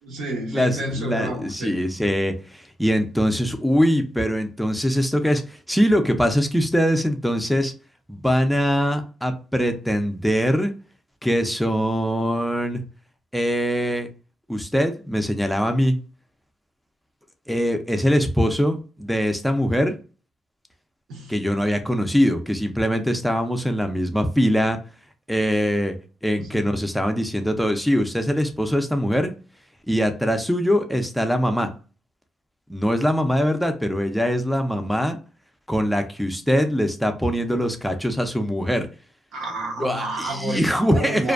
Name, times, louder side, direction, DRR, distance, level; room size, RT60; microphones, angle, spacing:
voice 1, 0.0-1.7 21.1-21.3 26.4-26.7 39.3-41.3, right 1 dB, 80° right, 0.8 m, -30 dB
voice 2, 0.5-7.7 8.1-10.7 11.2-12.8 13.3-14.1 14.5-16.0 17.5-19.9 21.3-24.8 25.3-25.9 26.2-29.3 29.9-31.7 32.7-35.2 35.7-38.9 39.8-41.3, equal, ahead, 0.4 m, -22 dB
2.5 x 2.2 x 2.3 m
cardioid pair, 90°, 0 cm